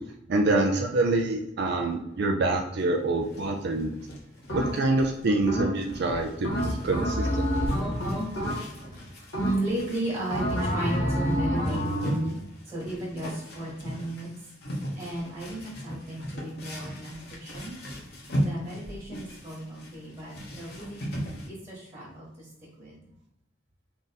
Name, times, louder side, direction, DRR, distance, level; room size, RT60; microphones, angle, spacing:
voice 1, 0.3-3.9 4.5-7.7, right 2 dB, 60° right, 2 dB, 0.4 m, -26 dB
sound 1, 2.8-21.5, equal, 60° left, 1.0 m, -38 dB
sound 2, 4.5-5.0 5.5-6.0 6.4-8.9 9.3-9.9 10.3-12.2, equal, 80° left, 1.4 m, -28 dB
voice 2, 7.4-12.4 12.7-14.3 14.9-17.7 18.4-22.5 22.8-23.0, right 1 dB, 25° right, -7 dB, 1.3 m, -35 dB
3.5 x 2.6 x 4.0 m, 0.83 s
head